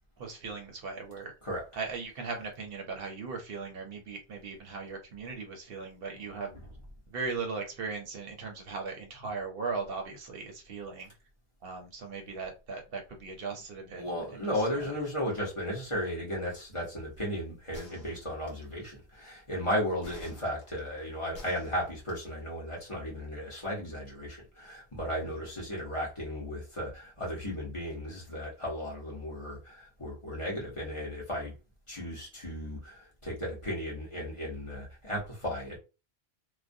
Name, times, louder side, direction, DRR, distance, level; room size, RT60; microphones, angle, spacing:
voice 1, 0.2-1.3 1.7-6.5 7.1-11.1 11.6-14.9 25.3-25.4, right 4 dB, 65° right, 0.8 m, -38 dB
voice 2, 13.9-31.5 31.9-35.8, equal, 30° left, 0.9 m, -35 dB
sound 1, 17.7-18.8 20.0-22.3, left 1 dB, 65° left, 1.1 m, -50 dB
2.4 x 2.2 x 2.5 m
omnidirectional pair, 1.1 m